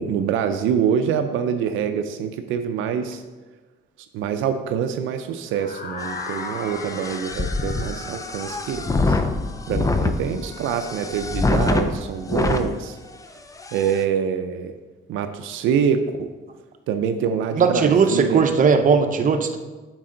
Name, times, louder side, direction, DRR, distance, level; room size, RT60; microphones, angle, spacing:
voice 1, 0.0-3.2 4.1-9.2 9.7-13.0 13.7-14.7 15.1-16.3 16.9-18.4, right 7 dB, 90° right, 8 dB, 0.5 m, -25 dB
sound 1, 5.5-11.4, left 4 dB, 45° left, 0.9 m, -38 dB
sound 2, 6.0-12.7 13.2-13.3 13.6-14.0, left 3 dB, 15° left, 0.5 m, -25 dB
voice 2, 17.6-19.6, right 5 dB, 40° right, 6 dB, 0.7 m, -18 dB
7.6 x 4.7 x 3.8 m, 1.3 s
cardioid pair, 90°, 20 cm